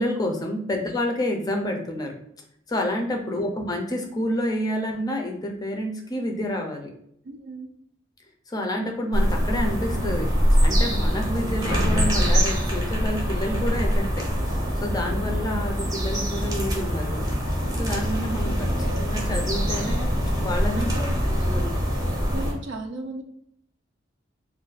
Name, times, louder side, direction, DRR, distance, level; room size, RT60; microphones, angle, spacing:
voice 1, 0.0-2.2 2.7-6.9 8.5-10.3 10.6-14.3 14.8-17.3 17.8-20.1 20.4-20.9 21.3-21.8, left 1 dB, 20° left, 2 dB, 0.4 m, -29 dB
voice 2, 7.2-7.7 18.9-19.1 20.8-21.2 22.3-23.2, right 2 dB, 70° right, 5 dB, 0.5 m, -36 dB
sound 1, 9.1-22.5, equal, 20° right, 0.7 m, -24 dB
2.3 x 2.2 x 3.9 m, 0.71 s
head